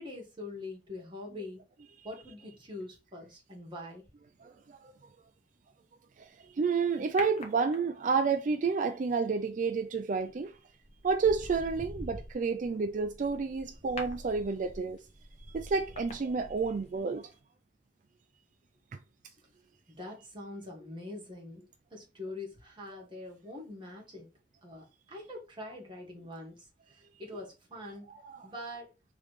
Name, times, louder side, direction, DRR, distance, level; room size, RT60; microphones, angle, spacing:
voice 1, 0.0-1.6 2.0-4.0 19.9-24.3 24.6-28.1 28.4-28.9, left 2 dB, 30° right, 1.7 m, -44 dB
voice 2, 4.4-4.9 6.2-10.5 11.0-15.0 15.5-17.3 28.1-28.5, right 5 dB, 45° right, 0.4 m, -30 dB
sound 1, 7.2-8.2 10.1-10.4 10.8-17.0 17.3-17.4, left 1 dB, 35° left, 0.9 m, -45 dB
3.5 x 3.2 x 4.8 m
head